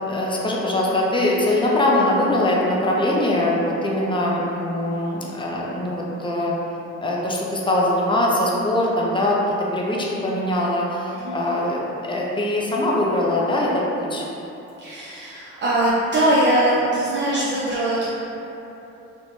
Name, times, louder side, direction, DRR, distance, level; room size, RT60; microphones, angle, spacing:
voice 1, 0.1-6.6 7.0-9.4 9.7-14.2, left 1 dB, 15° left, -4 dB, 0.4 m, -22 dB
voice 2, 14.8-18.1, right 1 dB, 40° right, -8 dB, 0.5 m, -21 dB
3.2 x 2.1 x 2.5 m, 3.0 s
cardioid pair, 90°, 30 cm